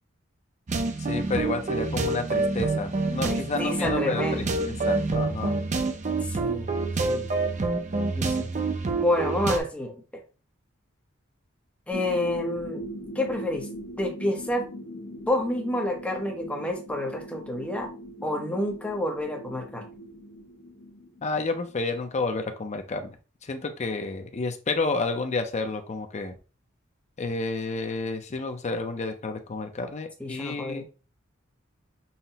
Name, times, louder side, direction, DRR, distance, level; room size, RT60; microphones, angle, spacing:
sound 1, 0.7-9.6, right 3 dB, 35° right, 0.5 m, -27 dB
voice 1, 1.1-5.6 21.2-23.1 23.4-26.3 27.2-30.8, left 3 dB, 35° left, 6 dB, 0.5 m, -30 dB
voice 2, 3.2-4.5 6.3-6.7 7.0-7.3 8.0-8.5 9.0-9.9 11.9-12.8 13.1-13.7 14.0-14.7 15.3-17.9 18.2-19.8 30.2-30.8, left 1 dB, 5° left, 0 dB, 0.8 m, -29 dB
sound 2, 11.9-22.4, equal, 55° left, 1.6 m, -40 dB
5.6 x 2.1 x 2.8 m, 0.34 s
head